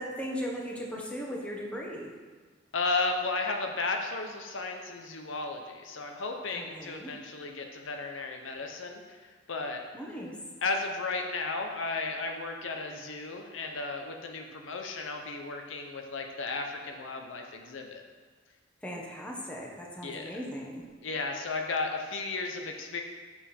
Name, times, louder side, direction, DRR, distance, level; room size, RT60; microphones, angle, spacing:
voice 1, 0.0-2.1 6.5-7.1 9.9-10.3 18.8-20.8, equal, 5° left, -2 dB, 1.0 m, -38 dB
voice 2, 2.7-9.2 9.5-9.8 10.6-18.0 20.0-20.4 21.0-23.0, left 3 dB, 70° left, 3 dB, 0.7 m, -34 dB
7.0 x 5.6 x 4.3 m, 1.5 s
head